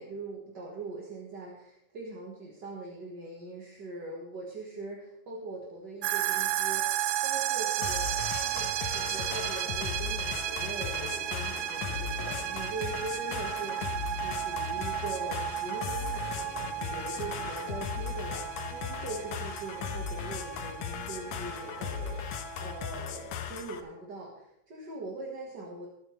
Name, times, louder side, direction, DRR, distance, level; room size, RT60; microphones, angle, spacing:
voice 1, 0.0-8.1 8.4-25.9, right 2 dB, 40° right, -2 dB, 2.0 m, -41 dB
sound 1, 6.0-22.8, right 13 dB, 90° right, 1.3 m, -34 dB
sound 2, 7.8-23.8, left 7 dB, 75° left, 2.2 m, -37 dB
20.5 x 9.0 x 3.4 m, 0.77 s
omnidirectional pair, 3.4 m